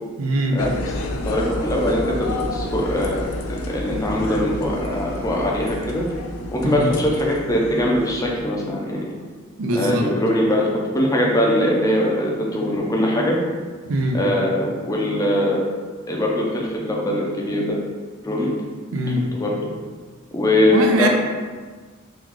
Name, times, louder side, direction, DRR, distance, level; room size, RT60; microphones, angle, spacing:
voice 1, 0.2-0.6 6.4-6.9 9.6-10.1 13.8-14.2 18.9-19.3 20.7-21.1, right 1 dB, 85° right, 2 dB, 0.5 m, -22 dB
sound 1, 0.6-8.4, left 2 dB, 90° left, 0.4 m, -30 dB
voice 2, 1.2-3.2 3.5-6.0 6.5-9.1 9.8-10.7 10.9-13.4 14.1-15.6 16.1-17.8 18.2-18.5 19.4-19.5 20.3-21.1, left 1 dB, 15° left, -2 dB, 0.5 m, -21 dB
3.1 x 2.3 x 3.7 m, 1.5 s
head